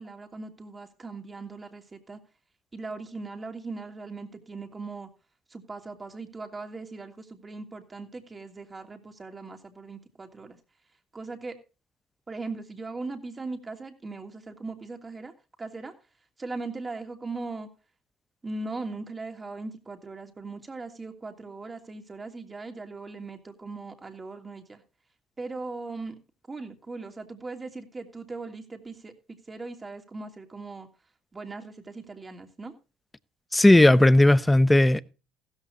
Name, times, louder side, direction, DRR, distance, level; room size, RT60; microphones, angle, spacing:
voice 1, 0.0-2.2 2.7-5.1 5.5-10.6 11.1-11.6 12.3-15.3 15.6-15.9 16.4-17.7 18.4-24.8 25.4-26.2 26.5-30.9 31.3-32.7, right 3 dB, 25° right, 2.9 m, -39 dB
voice 2, 33.5-35.0, left 1 dB, 10° left, 0.8 m, -16 dB
15.5 x 14.0 x 2.6 m
supercardioid pair, 85°, 0 cm